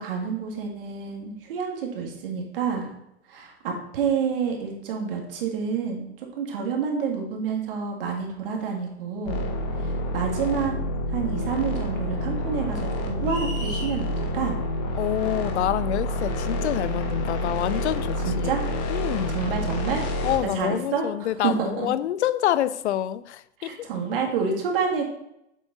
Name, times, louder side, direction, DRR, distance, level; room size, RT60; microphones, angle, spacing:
voice 1, 0.0-2.9 3.3-9.5 9.8-10.7 11.1-14.6 18.2-18.6 19.3-20.1 20.5-21.0 21.4-21.9 23.6-25.0, right 6 dB, 55° right, 0 dB, 1.9 m, -28 dB
sound 1, 9.3-20.4, equal, 35° left, 1.4 m, -28 dB
sound 2, 13.2-14.0, left 1 dB, 20° left, 2.1 m, -36 dB
voice 2, 15.0-18.6 18.9-19.4 20.2-23.9, left 12 dB, 85° left, 16 dB, 0.6 m, -27 dB
7.5 x 5.0 x 3.9 m, 0.81 s
supercardioid pair, 155°, 33 cm